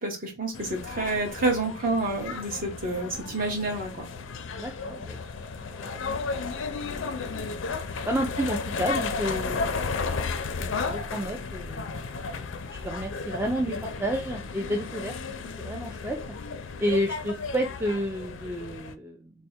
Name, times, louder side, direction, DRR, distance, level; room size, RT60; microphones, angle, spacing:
voice 1, 0.0-4.1, right 2 dB, 45° right, 1.1 m, -29 dB
sound 1, 0.5-18.9, left 4 dB, 65° left, 0.4 m, -34 dB
voice 2, 4.6-5.2 5.7-6.3 6.9-7.7 8.1-9.9 10.6-11.9 12.3-12.4 12.8-15.1 15.6-16.2 16.8-19.3, equal, 10° right, 0.3 m, -31 dB
3.3 x 2.1 x 4.2 m
head